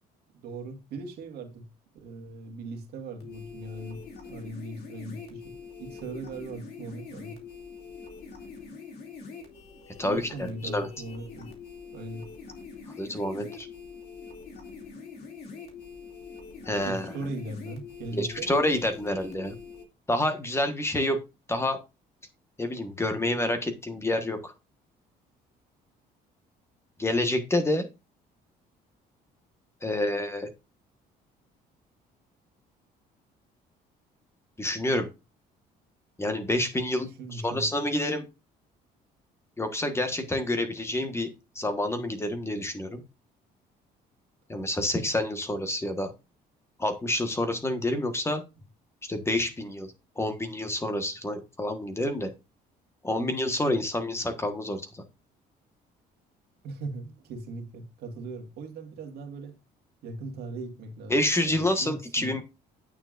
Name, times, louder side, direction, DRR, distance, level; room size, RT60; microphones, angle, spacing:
voice 1, 0.3-1.7 1.9-4.0 4.3-7.4 10.0-11.5 11.9-12.2 16.8-18.5 37.2-37.7 56.6-59.5 60.0-61.2 61.5-62.4, right 2 dB, 70° right, 1.8 m, -39 dB
sound 1, 3.2-19.8, left 5 dB, 70° left, 2.6 m, -44 dB
voice 2, 10.0-10.9 13.0-13.7 16.7-17.1 18.1-19.5 20.1-21.2 21.5-21.8 22.6-24.5 27.0-27.9 29.8-30.5 34.6-35.1 36.2-38.3 39.6-41.3 41.5-43.0 44.5-46.1 46.8-48.4 49.0-52.3 53.0-55.0 61.1-62.4, left 1 dB, 15° left, 1.3 m, -28 dB
8.9 x 6.8 x 2.5 m
cardioid pair, 110°, 17 cm